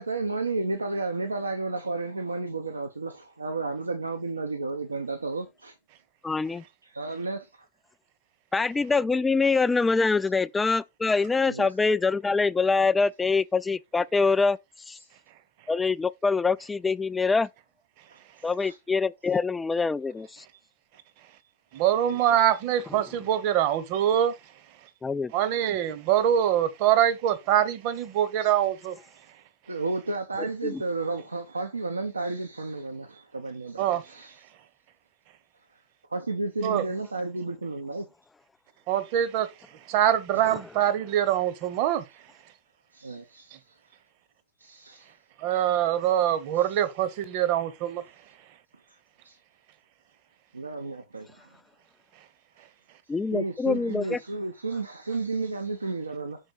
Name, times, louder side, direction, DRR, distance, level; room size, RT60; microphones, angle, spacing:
voice 1, 0.0-5.7 6.8-7.5 11.5-11.7 18.1-18.2 18.6-18.8 22.1-22.4 29.7-34.4 36.1-38.1 40.3-40.4 42.9-43.8 44.6-45.1 46.6-46.7 49.2-49.4 50.5-51.5 53.3-56.4, right 3 dB, 80° right, 0.8 m, -32 dB
voice 2, 6.2-6.6 8.5-14.6 14.9-15.0 15.7-17.5 18.4-20.4 25.0-25.3 30.6-30.8 40.5-40.6 53.1-54.2, left 4 dB, 10° left, 0.3 m, -24 dB
voice 3, 21.7-24.3 25.3-29.0 33.8-34.0 36.6-36.8 38.9-39.5 39.9-42.0 45.4-48.0, right 11 dB, 45° right, 1.0 m, -24 dB
6.4 x 4.3 x 4.5 m
figure-of-eight pair, 90°, 0 cm